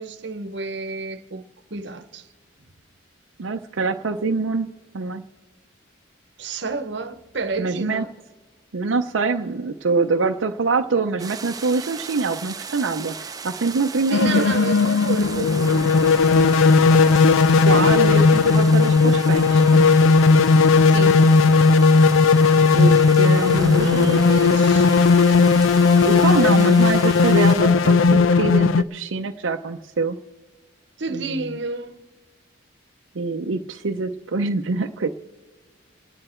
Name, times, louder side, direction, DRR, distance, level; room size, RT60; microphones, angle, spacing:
voice 1, 0.0-1.4 1.7-2.3 6.4-8.1 14.1-16.3 20.9-21.2 23.5-24.9 31.0-32.0, right 3 dB, 60° right, 0.9 m, -30 dB
voice 2, 3.4-4.7 4.9-5.2 7.6-8.0 8.7-14.5 17.7-20.0 22.7-24.2 26.0-30.2 31.1-31.3 33.1-35.1, right 4 dB, 80° right, 0.6 m, -24 dB
sound 1, 11.2-27.6, right 5 dB, 20° right, 0.6 m, -37 dB
sound 2, 14.1-28.8, left 4 dB, 85° left, 0.4 m, -16 dB
28.5 x 9.9 x 4.4 m
head